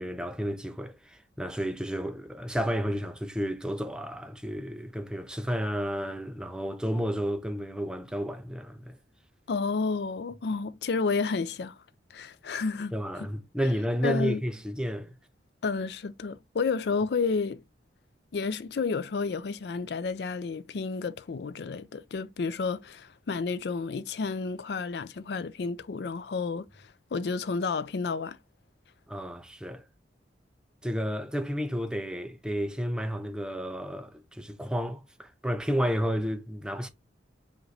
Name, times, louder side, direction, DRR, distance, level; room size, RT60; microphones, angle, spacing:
voice 1, 0.0-9.0 12.9-15.1 29.1-29.8 30.8-36.9, equal, 5° right, 0.4 m, -31 dB
voice 2, 9.5-11.8 12.1-13.3 14.0-14.4 15.6-17.6 18.3-28.4, left 4 dB, 65° left, 0.4 m, -31 dB
5.0 x 2.6 x 3.1 m
head